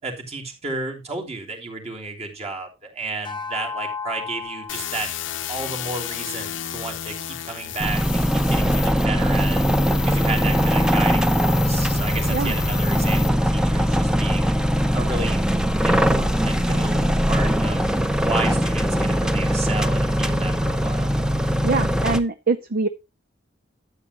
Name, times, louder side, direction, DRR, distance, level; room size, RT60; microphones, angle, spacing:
voice 1, 0.0-5.1 5.5-9.6 10.0-14.5 14.9-15.4 15.8-17.9 18.2-21.2, right 3 dB, 35° right, 1 dB, 3.2 m, -32 dB
sound 1, 3.2-7.8, left 5 dB, 25° left, 0.9 m, -37 dB
sound 2, 4.7-13.3, left 9 dB, 80° left, 0.8 m, -32 dB
sound 3, 7.8-22.2, equal, 5° right, 0.8 m, -21 dB
voice 2, 21.6-22.9, right 3 dB, 50° right, 11 dB, 0.7 m, -23 dB
13.0 x 8.4 x 2.9 m, 0.25 s
head